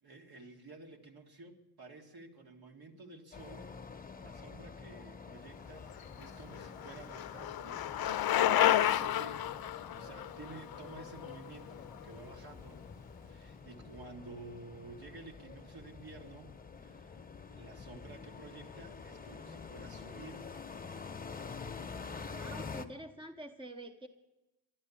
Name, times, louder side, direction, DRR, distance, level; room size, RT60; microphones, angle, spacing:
voice 1, 0.0-3.8 4.2-8.2 8.5-12.8 13.2-16.5 16.8-17.2 17.5-20.6, right 3 dB, 60° right, 2 dB, 2.2 m, -52 dB
sound 1, 3.3-22.9, left 5 dB, 20° left, 1.2 m, -47 dB
Bicycle, 6.0-12.0, left 12 dB, 60° left, 0.6 m, -31 dB
voice 2, 22.3-24.1, right 1 dB, 10° right, 6 dB, 1.0 m, -47 dB
11.5 x 11.0 x 8.5 m, 1.0 s
cardioid pair, 80°, 43 cm